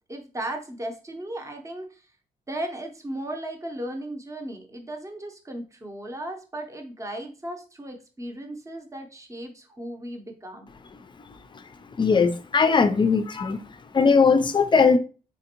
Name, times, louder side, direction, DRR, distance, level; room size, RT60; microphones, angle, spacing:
voice 1, 0.1-2.0 2.5-10.7, right 1 dB, 20° right, 0.7 m, -36 dB
voice 2, 12.0-13.6 13.9-15.0, left 5 dB, 30° left, 0.4 m, -19 dB
4.2 x 2.5 x 2.9 m
cardioid pair, 95°, 17 cm